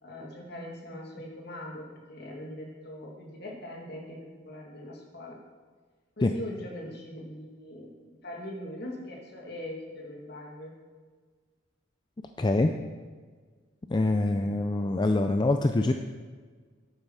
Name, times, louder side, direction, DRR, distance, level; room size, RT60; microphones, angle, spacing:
voice 1, 0.0-5.4 6.2-10.7 14.3-14.5, left 1 dB, 55° left, -1 dB, 2.2 m, -41 dB
voice 2, 12.4-12.7 13.9-15.9, left 2 dB, 20° left, 6 dB, 0.4 m, -24 dB
11.0 x 8.9 x 4.7 m, 1.5 s
head